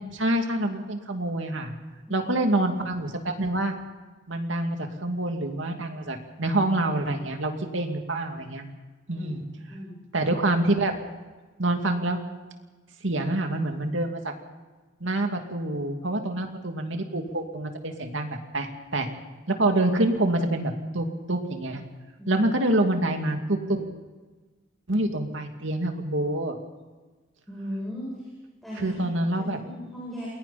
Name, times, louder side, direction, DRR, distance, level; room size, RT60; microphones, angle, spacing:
voice 1, 0.0-1.7 2.1-3.7 4.3-8.6 9.1-9.4 10.1-11.0 11.6-12.2 13.0-14.3 15.0-18.7 18.9-19.1 19.5-21.8 22.3-23.4 23.7-23.9 24.9-26.6 28.8-29.6, right 1 dB, 80° right, 4 dB, 2.6 m, -26 dB
voice 2, 27.5-28.3 28.6-29.0 29.3-30.3, equal, ahead, -7 dB, 7.9 m, -37 dB
28.5 x 21.0 x 4.3 m, 1.2 s
head